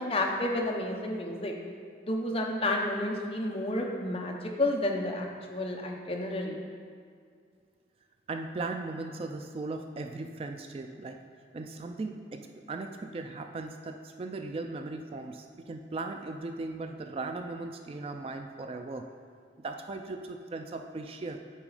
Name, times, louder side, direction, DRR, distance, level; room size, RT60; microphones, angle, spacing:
voice 1, 0.0-1.5 2.0-6.6, left 1 dB, 30° left, 1 dB, 0.7 m, -31 dB
voice 2, 8.3-11.2 11.5-19.1 19.6-21.4, right 3 dB, 30° right, 5 dB, 0.3 m, -38 dB
8.8 x 4.1 x 4.8 m, 2.1 s
head